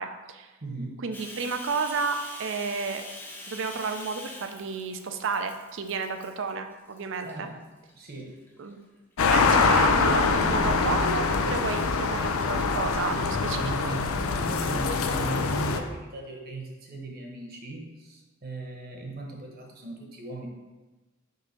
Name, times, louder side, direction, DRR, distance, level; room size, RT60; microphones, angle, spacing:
voice 1, 0.0-0.5 1.0-3.0 3.5-7.5 8.6-8.8 9.3-13.7, right 5 dB, 65° right, 7 dB, 0.5 m, -31 dB
voice 2, 0.6-1.1 7.2-7.7 7.9-8.4 13.5-20.5, right 2 dB, 45° right, 0 dB, 1.0 m, -39 dB
Bathtub (filling or washing), 1.1-6.5 6.9-7.3 7.9-8.7, left 1 dB, 10° left, 0.7 m, -44 dB
sound 1, 9.2-15.8, left 4 dB, 90° left, 0.5 m, -24 dB
5.6 x 3.6 x 5.1 m, 1.2 s
head